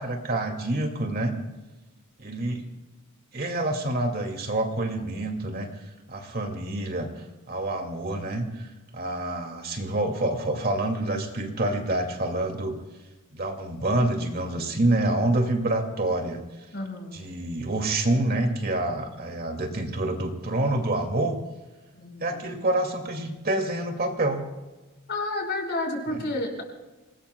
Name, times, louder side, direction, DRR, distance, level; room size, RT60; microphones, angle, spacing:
voice 1, 0.0-1.3 2.2-2.6 3.3-5.7 6.1-12.8 13.3-16.4 17.1-21.4 22.2-24.5 26.1-26.2, right 1 dB, 45° right, 3 dB, 2.4 m, -27 dB
voice 2, 16.7-17.2 21.9-22.4 25.1-26.6, left 2 dB, 50° left, 2 dB, 5.4 m, -31 dB
28.5 x 20.0 x 2.3 m, 1.2 s
head